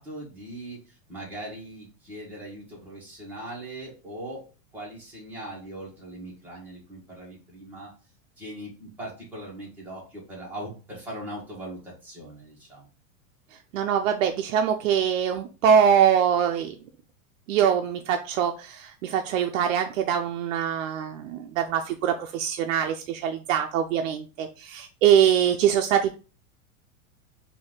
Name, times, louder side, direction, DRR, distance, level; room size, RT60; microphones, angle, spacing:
voice 1, 0.0-4.4 4.7-7.9 8.4-12.9, right 1 dB, 5° right, -6 dB, 1.4 m, -40 dB
voice 2, 13.5-16.8 17.5-26.2, right 8 dB, 70° right, 5 dB, 0.6 m, -23 dB
4.3 x 2.7 x 3.7 m, 0.34 s
supercardioid pair, 165°, 40 cm